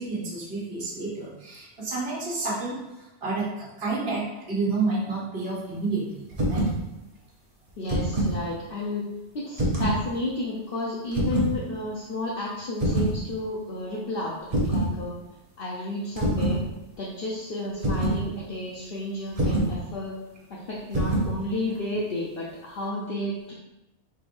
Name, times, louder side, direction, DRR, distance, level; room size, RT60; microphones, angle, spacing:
voice 1, 0.0-2.8 3.2-6.7, right 3 dB, 55° right, -5 dB, 1.4 m, -30 dB
sound 1, 6.3-6.8 7.7-8.4 9.5-10.0 11.1-11.5 12.8-13.2 14.5-14.9 16.2-16.6 17.8-18.2 19.4-19.8 20.9-21.3, right 1 dB, 35° right, 0.9 m, -24 dB
voice 2, 7.8-9.1 9.3-15.1 15.6-16.6 17.0-20.1 20.5-23.5, left 1 dB, 55° left, -5 dB, 0.8 m, -32 dB
4.8 x 3.6 x 2.5 m, 0.94 s
omnidirectional pair, 1.2 m